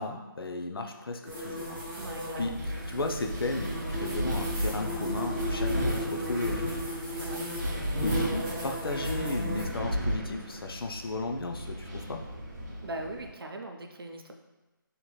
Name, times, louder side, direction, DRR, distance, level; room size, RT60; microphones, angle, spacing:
voice 1, 0.0-2.0 2.4-2.5 2.9-6.8 8.0-12.2, left 2 dB, 90° left, 4 dB, 0.4 m, -35 dB
sound 1, 1.2-9.6, equal, 10° right, 0.5 m, -36 dB
Wind, 1.8-13.3, equal, 45° right, 0.7 m, -34 dB
voice 2, 1.9-2.5 7.2-7.7 12.8-14.3, right 1 dB, 90° right, 4 dB, 0.4 m, -40 dB
3.0 x 2.8 x 2.2 m, 1.1 s
figure-of-eight pair, 165°, 12 cm